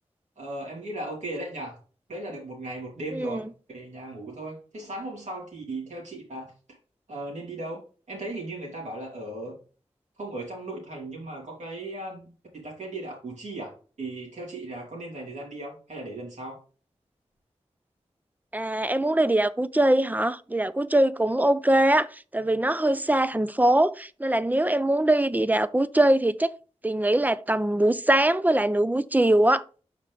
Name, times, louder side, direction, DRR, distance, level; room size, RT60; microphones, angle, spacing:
voice 1, 0.4-1.8 2.1-6.5 7.1-7.8 8.1-9.6 10.2-16.6, right 2 dB, 90° right, 2.8 m, -37 dB
voice 2, 3.1-3.4 18.5-26.5 26.8-29.6, right 1 dB, 15° right, 0.4 m, -22 dB
6.1 x 4.9 x 3.4 m
cardioid pair, 45°, 12 cm